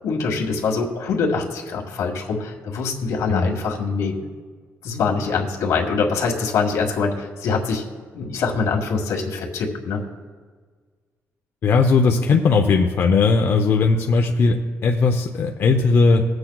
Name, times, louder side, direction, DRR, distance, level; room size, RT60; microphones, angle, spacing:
voice 1, 0.0-4.2 4.8-7.8 8.1-10.0, left 4 dB, 80° left, 0 dB, 1.7 m, -24 dB
voice 2, 11.6-16.3, left 4 dB, 45° left, 3 dB, 0.6 m, -18 dB
22.0 x 7.9 x 2.3 m, 1.5 s
cardioid pair, 150°, 5 cm